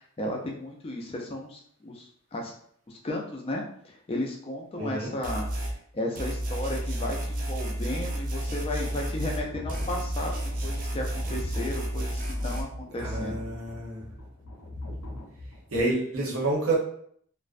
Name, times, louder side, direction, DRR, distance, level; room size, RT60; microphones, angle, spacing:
voice 1, 0.0-2.5 2.9-5.5 5.9-10.3 10.6-13.5, left 1 dB, 25° left, 1 dB, 0.4 m, -34 dB
voice 2, 4.8-5.1 13.0-14.1 15.7-16.8, right 2 dB, 75° right, -3 dB, 0.8 m, -28 dB
sound 1, 5.2-5.8 6.2-9.4 9.7-12.6, right 1 dB, 40° right, 0.4 m, -31 dB
sound 2, 8.7-15.8, left 1 dB, 85° left, 0.7 m, -41 dB
2.4 x 2.1 x 2.4 m, 0.63 s
head